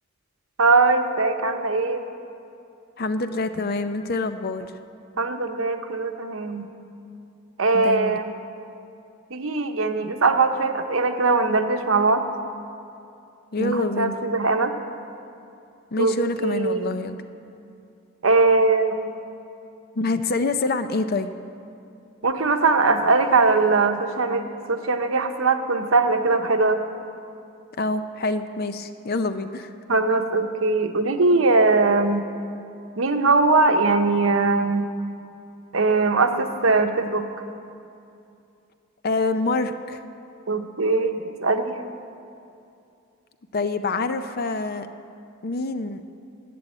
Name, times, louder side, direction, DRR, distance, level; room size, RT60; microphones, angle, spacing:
voice 1, 0.6-2.0 5.2-6.7 7.6-8.3 9.3-12.2 13.6-14.7 16.0-17.0 18.2-19.2 22.2-26.8 29.9-32.2 33.0-34.9 35.7-37.2 40.5-41.8, right 3 dB, 75° right, 6 dB, 0.9 m, -21 dB
voice 2, 3.0-4.7 7.7-8.2 13.5-14.2 15.9-17.2 20.0-21.3 27.8-29.7 39.0-40.0 43.5-44.9 45.4-46.0, left 3 dB, 50° left, 10 dB, 0.5 m, -26 dB
11.5 x 8.4 x 8.9 m, 2.6 s
head